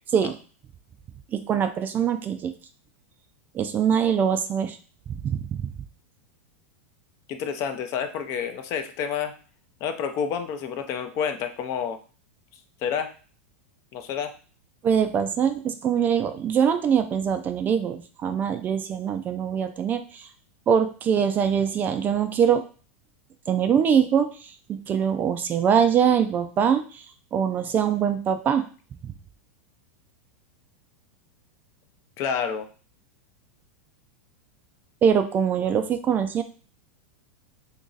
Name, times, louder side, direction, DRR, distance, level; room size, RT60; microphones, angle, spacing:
voice 1, 1.3-2.5 3.5-4.8 5.3-5.6 14.8-20.3 20.7-22.6 23.5-24.3 24.7-26.8 27.3-28.6 35.0-36.4, right 8 dB, 25° right, 8 dB, 0.3 m, -23 dB
voice 2, 7.3-9.3 9.8-12.0 12.8-13.1 13.9-14.3 32.2-32.7, left 7 dB, 40° left, 8 dB, 0.5 m, -29 dB
3.0 x 2.6 x 3.8 m, 0.38 s
supercardioid pair, 135°, 7 cm